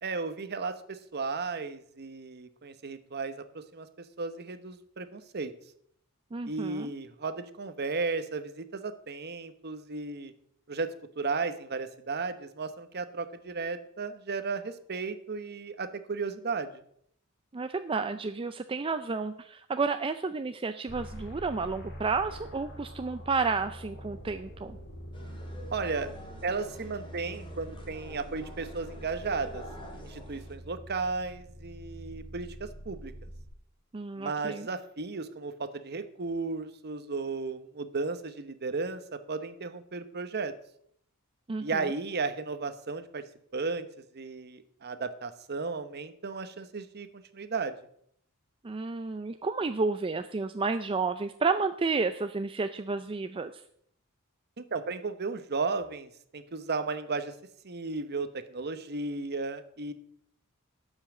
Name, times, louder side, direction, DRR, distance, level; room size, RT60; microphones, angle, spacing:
voice 1, 0.0-5.5 6.5-10.3 10.7-16.8 25.7-26.1 26.4-29.6 30.0-33.3 34.2-40.5 41.6-43.2 43.5-47.7 54.6-57.3 57.6-59.9, right 4 dB, 50° right, 11 dB, 0.9 m, -34 dB
voice 2, 6.3-6.9 17.5-24.8 33.9-34.7 41.5-41.9 48.6-53.6, right 4 dB, 25° right, 9 dB, 0.4 m, -31 dB
sound 1, 20.9-33.4, equal, 50° left, 2.8 m, -45 dB
sound 2, 25.1-30.5, equal, 25° left, 2.5 m, -48 dB
12.0 x 5.6 x 8.0 m, 0.69 s
head